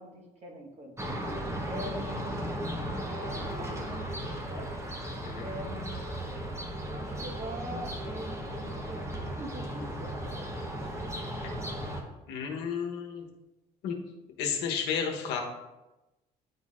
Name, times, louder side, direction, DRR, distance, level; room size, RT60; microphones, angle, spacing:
voice 1, 0.0-2.5 3.1-4.7 5.4-6.0 6.8-10.7, right 1 dB, 40° right, 0 dB, 1.3 m, -44 dB
sound 1, 1.0-12.0, right 1 dB, 15° right, 0.9 m, -36 dB
voice 2, 12.3-13.3 13.8-14.0 14.4-15.4, left 7 dB, 85° left, 2 dB, 1.0 m, -32 dB
9.8 x 4.0 x 2.4 m, 1.0 s
cardioid pair, 110°, 17 cm